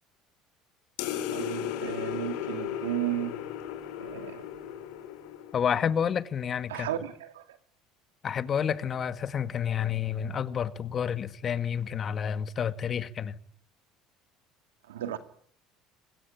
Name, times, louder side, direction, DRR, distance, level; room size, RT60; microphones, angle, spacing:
sound 1, 1.0-5.9, left 10 dB, 75° left, 4.3 m, -35 dB
voice 1, 1.3-3.4 4.0-4.4 6.7-7.6 14.9-15.2, right 12 dB, 90° right, 2.4 m, -34 dB
voice 2, 5.5-6.9 8.2-13.4, left 8 dB, 40° left, 2.0 m, -29 dB
27.0 x 21.0 x 9.4 m
hypercardioid pair, 75°, 0 cm